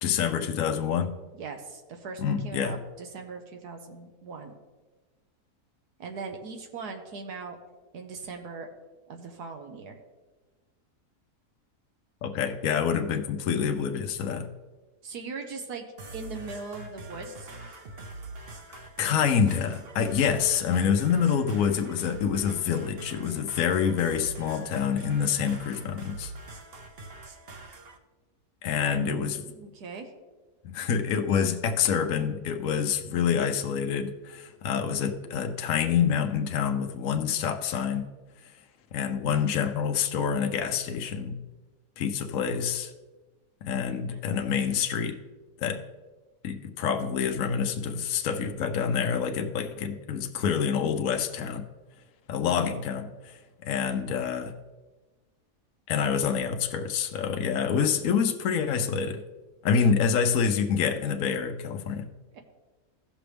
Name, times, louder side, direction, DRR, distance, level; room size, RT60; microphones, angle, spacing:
voice 1, 0.0-1.1 2.2-2.8 12.2-14.5 18.7-26.3 28.6-29.4 30.7-38.1 38.9-41.4 42.0-42.9 43.6-45.2 45.6-45.8 46.4-51.7 52.3-54.6 55.9-59.2 59.6-62.1, left 7 dB, 65° left, 5 dB, 1.0 m, -27 dB
voice 2, 1.3-4.5 6.0-7.6 7.9-8.7 9.1-10.0 15.0-15.8 16.1-17.5 28.8-30.1 59.8-59.9 62.3-62.4, right 4 dB, 80° right, 3 dB, 1.5 m, -40 dB
sound 1, 16.0-28.0, right 2 dB, 45° right, 0.9 m, -43 dB
16.0 x 6.0 x 3.4 m, 1.3 s
omnidirectional pair, 1.7 m